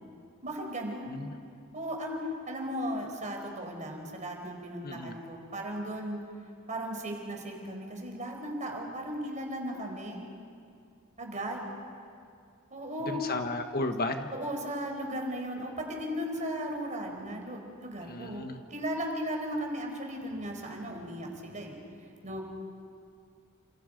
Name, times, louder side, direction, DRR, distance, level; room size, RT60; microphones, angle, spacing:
voice 1, 0.4-1.1 1.7-2.2 2.5-6.2 6.7-10.2 11.2-11.6 12.7-13.2 14.3-21.7 22.2-22.4, equal, 35° right, 2 dB, 4.6 m, -36 dB
voice 2, 4.8-5.2 13.1-14.3 18.1-18.6, left 2 dB, 45° left, 6 dB, 1.3 m, -34 dB
29.5 x 28.0 x 5.3 m, 2.3 s
head